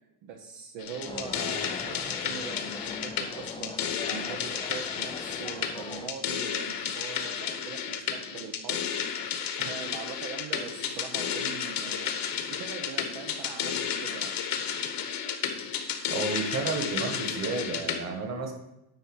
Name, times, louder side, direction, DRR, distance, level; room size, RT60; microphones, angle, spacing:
voice 1, 0.2-3.8 4.1-9.2 9.6-14.3, right 7 dB, 65° right, 3 dB, 1.0 m, -42 dB
sound 1, 0.8-18.0, left 8 dB, 50° left, 1.2 m, -32 dB
sound 2, 1.1-6.1, left 4 dB, 10° left, 0.4 m, -41 dB
voice 2, 16.1-18.5, right 4 dB, 35° right, 5 dB, 1.8 m, -31 dB
9.7 x 4.1 x 6.3 m, 0.90 s
cardioid pair, 115°, 45 cm